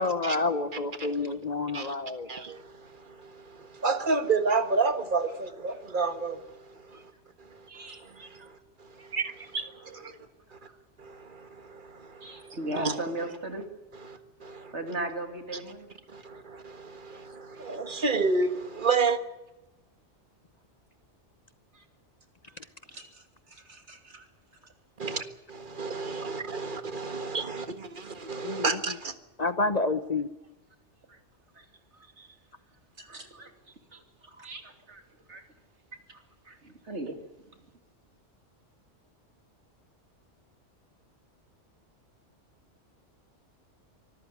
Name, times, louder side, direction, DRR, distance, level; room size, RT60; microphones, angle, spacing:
voice 1, 0.0-2.3 28.4-28.8 29.4-30.3, left 3 dB, 40° left, 1.0 m, -29 dB
voice 2, 0.8-1.3 6.9-7.0 7.7-8.3 9.0-9.1 9.8-10.1 10.6-10.7 12.2-13.6 14.7-15.9 21.7-21.8 22.9-23.2 23.5-24.3 31.1-31.2 31.6-31.7 32.2-32.3 33.0-33.5 33.9-35.0 35.3-35.4 36.1-37.2, right 2 dB, 70° right, 3.1 m, -39 dB
voice 3, 2.3-7.1 7.4-10.1 10.5-10.6 11.0-13.0 13.9-14.7 16.1-19.2 25.0-25.2 25.5-29.1, right 4 dB, 45° right, 1.8 m, -31 dB
25.0 x 14.0 x 9.7 m
omnidirectional pair, 1.2 m